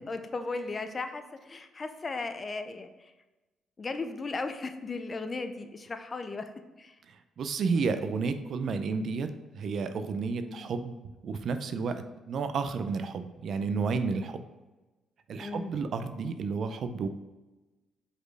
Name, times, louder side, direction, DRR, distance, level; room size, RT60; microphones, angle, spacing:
voice 1, 0.0-3.1 3.8-6.5 6.8-6.9 10.4-10.7 15.4-15.7, left 3 dB, 35° left, 8 dB, 0.6 m, -36 dB
voice 2, 7.1-11.0 11.2-14.4 15.3-17.1, right 4 dB, 60° right, 9 dB, 0.5 m, -31 dB
5.1 x 4.3 x 4.8 m, 1.1 s
cardioid pair, 90°, 0 cm